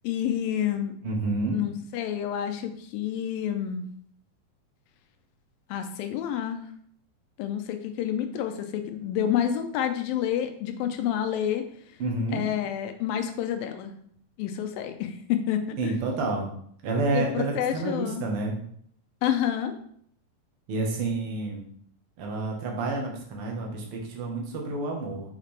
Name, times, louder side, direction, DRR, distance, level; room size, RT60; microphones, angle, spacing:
voice 1, 0.0-0.9 1.5-3.8 5.7-6.6 7.4-11.6 12.3-13.9 14.4-15.9 17.1-18.2 19.2-19.7, left 10 dB, 80° left, 7 dB, 2.4 m, -28 dB
voice 2, 1.0-1.6 12.0-12.4 15.8-16.5 16.8-18.5 20.7-21.6 22.2-25.2, right 3 dB, 55° right, 0 dB, 1.6 m, -29 dB
6.7 x 5.8 x 3.3 m, 0.64 s
omnidirectional pair, 4.1 m